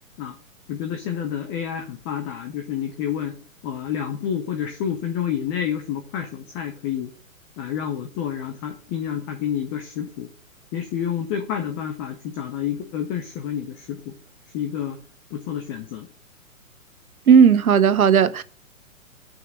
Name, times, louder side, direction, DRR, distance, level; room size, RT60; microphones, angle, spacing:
voice 1, 0.7-3.3 3.6-7.1 7.6-10.3 10.7-14.1 14.5-15.0 15.3-16.1, left 9 dB, 15° left, 0.5 m, -29 dB
voice 2, 17.3-18.4, right 7 dB, 85° right, 0.7 m, -14 dB
6.2 x 5.7 x 5.3 m
figure-of-eight pair, 125°, 42 cm